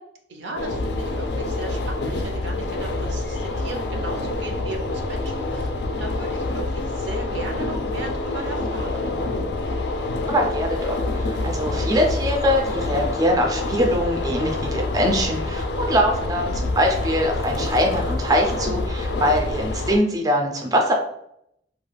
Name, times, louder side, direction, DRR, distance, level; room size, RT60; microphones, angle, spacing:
voice 1, 0.3-9.1, right 2 dB, 80° right, 3 dB, 0.5 m, -36 dB
sound 1, 0.6-20.0, left 2 dB, 70° left, 0.3 m, -27 dB
voice 2, 10.3-11.0 11.3-20.9, equal, 20° right, 1 dB, 0.3 m, -22 dB
2.3 x 2.2 x 3.2 m, 0.73 s
head